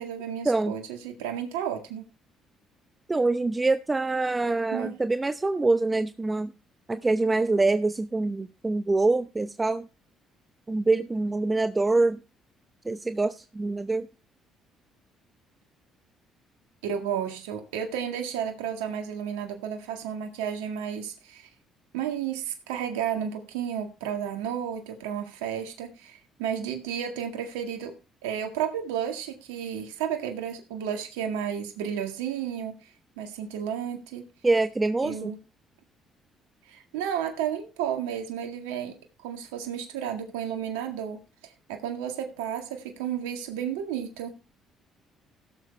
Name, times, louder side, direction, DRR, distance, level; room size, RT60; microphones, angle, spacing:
voice 1, 0.0-2.0 4.7-5.0 16.8-21.5 21.9-27.9 28.2-32.9 33.2-34.3 35.0-35.4 36.7-38.9 39.2-44.4, right 9 dB, 85° right, 4 dB, 1.7 m, -32 dB
voice 2, 3.1-6.5 6.9-9.9 10.7-12.2 12.8-14.1 34.4-35.3, right 3 dB, 25° right, 10 dB, 0.8 m, -25 dB
17.0 x 7.5 x 3.3 m, 0.31 s
hypercardioid pair, 60°, 0 cm